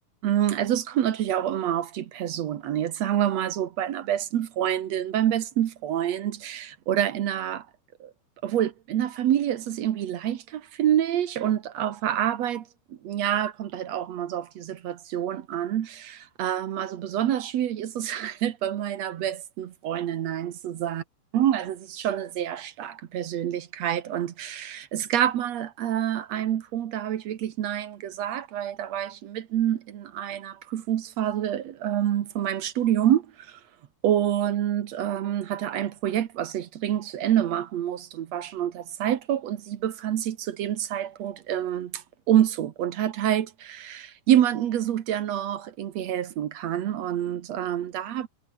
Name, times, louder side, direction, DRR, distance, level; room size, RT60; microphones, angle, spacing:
voice 1, 0.2-7.7 8.0-8.1 8.4-12.7 13.0-21.0 21.3-33.6 34.0-48.3, right 11 dB, 60° right, 1.8 m, -27 dB
omnidirectional pair, 4.5 m